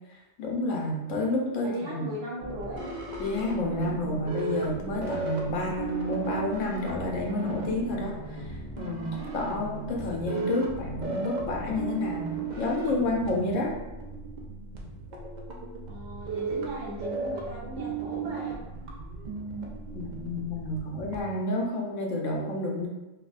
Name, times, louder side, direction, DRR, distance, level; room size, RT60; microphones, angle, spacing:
voice 1, 0.4-2.2 3.2-12.3 12.6-13.7 19.9-22.9, left 2 dB, 80° left, -1 dB, 1.0 m, -30 dB
voice 2, 1.6-2.9 15.8-18.6, right 1 dB, 70° right, -5 dB, 1.1 m, -37 dB
sound 1, 2.4-21.2, right 3 dB, 55° right, 0.5 m, -35 dB
4.5 x 2.1 x 2.4 m, 1.0 s
omnidirectional pair, 1.3 m